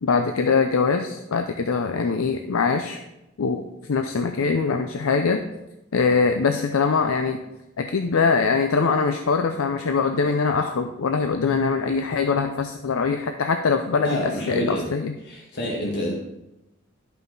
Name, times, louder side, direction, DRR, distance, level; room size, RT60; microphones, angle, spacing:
voice 1, 0.0-3.0 3.4-3.6 3.9-5.4 5.9-7.4 7.8-15.1, left 5 dB, 80° left, 6 dB, 0.5 m, -22 dB
voice 2, 14.0-14.9 15.2-16.1, equal, 55° left, -2 dB, 1.5 m, -27 dB
11.5 x 5.7 x 3.9 m, 0.92 s
head